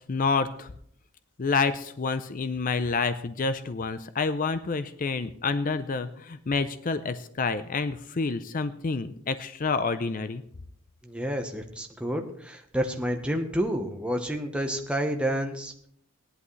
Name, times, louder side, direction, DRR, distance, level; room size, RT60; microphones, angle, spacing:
voice 1, 0.1-0.7 1.4-10.4, left 4 dB, 40° left, 12 dB, 0.5 m, -28 dB
voice 2, 11.0-15.7, equal, 5° right, 4 dB, 1.0 m, -29 dB
16.5 x 11.0 x 3.2 m, 0.66 s
head